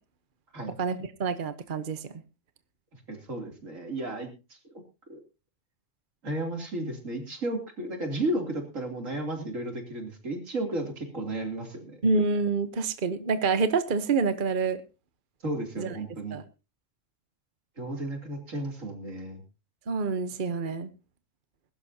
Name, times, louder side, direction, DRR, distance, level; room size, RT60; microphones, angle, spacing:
voice 1, 0.8-2.0 12.0-14.8 15.8-15.9 16.3-16.4 19.9-20.9, right 4 dB, 45° right, 10 dB, 1.1 m, -27 dB
voice 2, 3.1-4.3 5.1-5.2 6.2-12.0 15.4-16.4 17.8-19.4, right 1 dB, 90° right, 3 dB, 3.5 m, -33 dB
21.5 x 12.0 x 2.8 m, 0.30 s
omnidirectional pair, 1.3 m